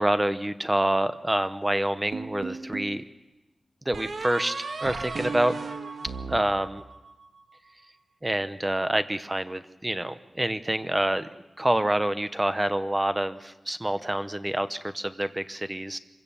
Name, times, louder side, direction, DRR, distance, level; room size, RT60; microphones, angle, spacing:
voice 1, 0.0-3.0 3.9-5.5 6.3-6.8 8.2-11.3 11.6-16.0, right 1 dB, 15° right, 12 dB, 0.8 m, -27 dB
sound 1, 2.1-3.0 3.9-7.3, right 4 dB, 75° right, 1.7 m, -35 dB
25.5 x 16.5 x 7.0 m, 1.1 s
wide cardioid pair, 110°, 0 cm